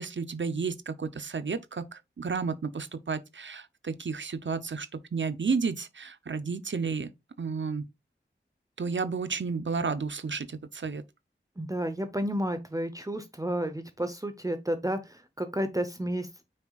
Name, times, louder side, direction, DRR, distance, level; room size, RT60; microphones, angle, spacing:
voice 1, 0.0-7.1 7.4-7.8 8.8-11.0, right 5 dB, 70° right, 0.6 m, -32 dB
voice 2, 11.6-16.3, right 1 dB, 15° right, 0.8 m, -31 dB
7.8 x 6.0 x 2.4 m
wide cardioid pair, 65°, 20 cm